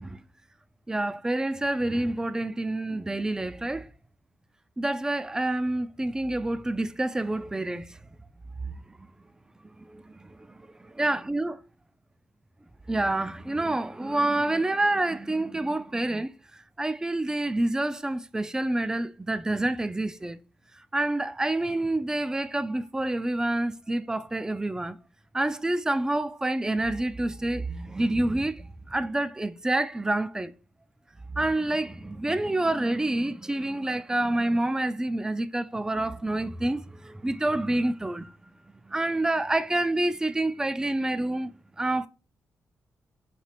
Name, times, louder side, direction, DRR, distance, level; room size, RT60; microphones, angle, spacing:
voice 1, 0.9-3.9 4.8-8.0 8.6-8.7 9.8-11.5 12.9-20.4 20.8-25.0 25.3-30.5 31.3-38.3 38.9-41.5 41.8-42.1, right 2 dB, 10° right, 0.3 m, -28 dB
4.3 x 2.9 x 3.2 m
cardioid pair, 90°, 6 cm